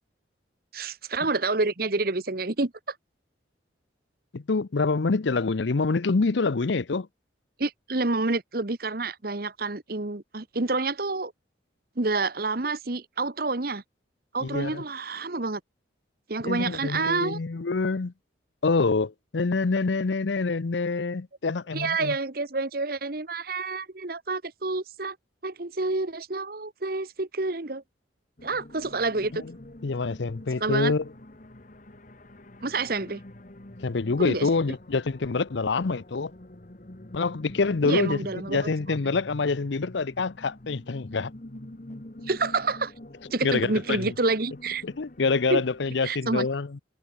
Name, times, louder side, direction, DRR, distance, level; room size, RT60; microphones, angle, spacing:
voice 1, 0.7-2.7 7.6-11.3 12.0-13.8 14.3-15.6 16.3-17.4 21.7-25.2 25.4-27.8 28.4-29.4 30.6-30.9 32.6-33.2 34.2-34.5 37.8-38.7 42.3-42.9 43.3-44.8 45.5-45.6 46.0-46.5, right 3 dB, 50° right, 1.2 m, -28 dB
voice 2, 4.3-7.1 14.4-14.8 16.4-18.1 18.6-22.2 29.3-29.5 29.8-31.0 33.8-36.3 37.1-41.3 43.4-44.1 44.8-46.8, left 4 dB, 70° left, 0.7 m, -26 dB
sound 1, 28.4-45.9, left 1 dB, 45° left, 1.5 m, -46 dB
head